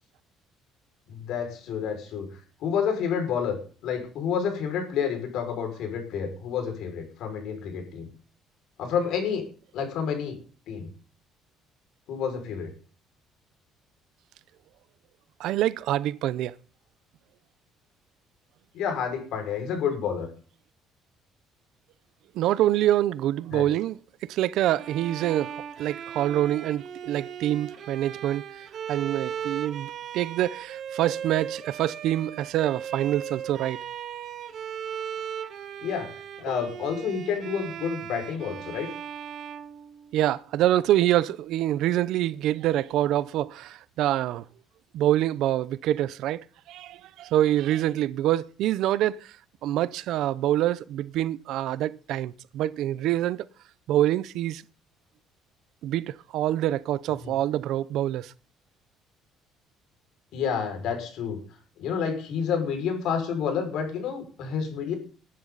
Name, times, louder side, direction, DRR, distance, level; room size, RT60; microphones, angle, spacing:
voice 1, 1.1-2.3 2.6-3.6 3.8-8.1 8.8-9.5 9.7-10.4 10.7-10.9 12.1-12.7 18.7-20.3 23.5-23.6 35.8-36.1 36.4-38.9 57.2-57.3 60.3-61.4 61.8-65.0, left 7 dB, 60° left, 5.7 m, -29 dB
voice 2, 15.4-16.6 22.3-25.5 25.8-28.5 28.9-33.8 40.1-44.4 44.9-49.4 49.6-53.4 53.9-54.6 55.8-58.3, right 13 dB, 60° right, 0.6 m, -26 dB
Bowed string instrument, 24.7-40.5, right 8 dB, 45° right, 1.7 m, -37 dB
20.5 x 11.0 x 4.1 m
cardioid pair, 170°, 0 cm